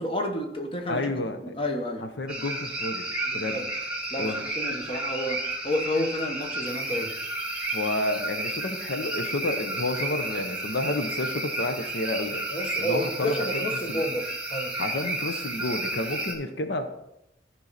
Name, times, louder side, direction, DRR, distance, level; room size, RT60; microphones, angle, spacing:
voice 1, 0.0-1.2 1.5-2.0 3.3-3.6 4.1-7.1 12.5-14.7, left 1 dB, 30° left, 3 dB, 1.1 m, -30 dB
voice 2, 0.9-1.5 2.0-3.1 3.3-3.6 4.2-4.5 7.7-12.4 12.8-13.6 13.9-14.0 14.8-16.9, left 2 dB, 80° left, 7 dB, 0.9 m, -30 dB
sound 1, 2.3-16.3, right 2 dB, 5° right, 2.1 m, -32 dB
13.5 x 5.6 x 4.1 m, 0.84 s
head